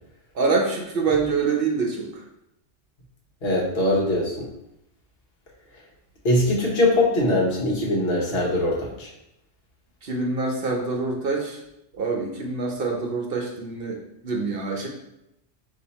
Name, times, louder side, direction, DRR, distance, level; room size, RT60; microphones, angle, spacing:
voice 1, 0.3-2.1 10.0-11.6 11.9-14.9, right 4 dB, 55° right, 0 dB, 0.8 m, -25 dB
voice 2, 3.4-4.5 6.2-9.1, left 1 dB, 60° left, -3 dB, 1.3 m, -22 dB
4.5 x 2.8 x 4.1 m, 0.82 s
omnidirectional pair, 1.2 m